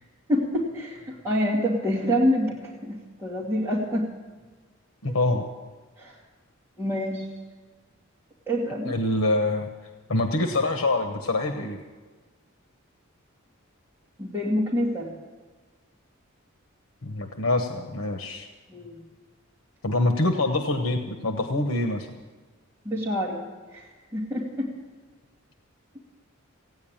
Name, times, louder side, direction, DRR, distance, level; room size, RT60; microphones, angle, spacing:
voice 1, 0.3-4.1 6.0-6.1 6.8-7.3 8.5-8.9 14.2-15.1 18.7-19.0 22.8-23.4 23.7-23.8 24.1-24.7, equal, 15° right, -6 dB, 2.4 m, -26 dB
voice 2, 5.0-5.5 8.8-9.7 10.1-11.8 17.0-18.5 19.8-22.1, left 2 dB, 90° left, 5 dB, 1.1 m, -25 dB
16.5 x 9.5 x 8.8 m, 1.4 s
head